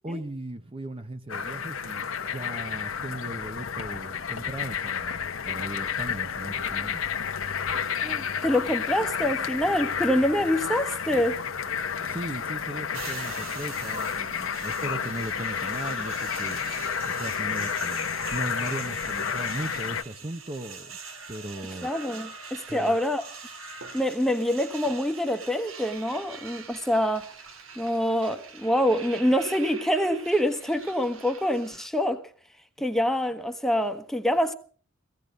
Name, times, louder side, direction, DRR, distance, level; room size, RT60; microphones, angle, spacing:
voice 1, 0.0-7.0 12.0-16.6 17.1-21.0 21.3-21.9 22.7-23.0, right 1 dB, 25° right, 0.8 m, -37 dB
sound 1, 1.3-20.0, left 7 dB, 80° left, 1.1 m, -31 dB
voice 2, 8.0-11.4 21.8-23.2 23.9-27.3 27.8-32.2 32.8-34.5, equal, ahead, 1.2 m, -26 dB
Crow, 12.1-12.6 13.0-19.0 20.6-24.9 25.3-25.7 26.0-26.4 26.7-27.8 28.5-28.8 29.9-30.9 31.2-31.4, right 1 dB, 70° right, 3.6 m, -50 dB
sound 2, 12.9-31.9, right 6 dB, 90° right, 2.2 m, -43 dB
16.5 x 16.0 x 5.2 m
head